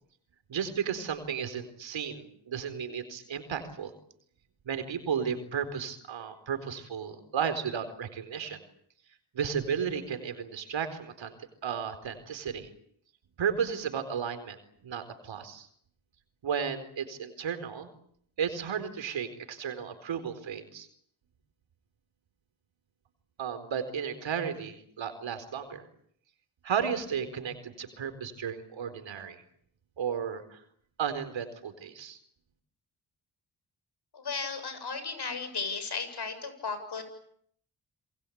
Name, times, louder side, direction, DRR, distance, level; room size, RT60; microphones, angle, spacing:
voice 1, 0.5-3.9 4.7-8.6 9.3-11.3 11.6-12.7 13.4-14.6 14.8-15.7 16.4-17.9 18.4-20.9 23.4-25.8 26.6-29.4 30.0-30.6 31.0-32.2, right 7 dB, 75° right, 9 dB, 4.4 m, -33 dB
voice 2, 34.1-37.0, left 4 dB, 55° left, 10 dB, 7.5 m, -35 dB
28.5 x 21.5 x 8.7 m, 0.67 s
supercardioid pair, 50°, 46 cm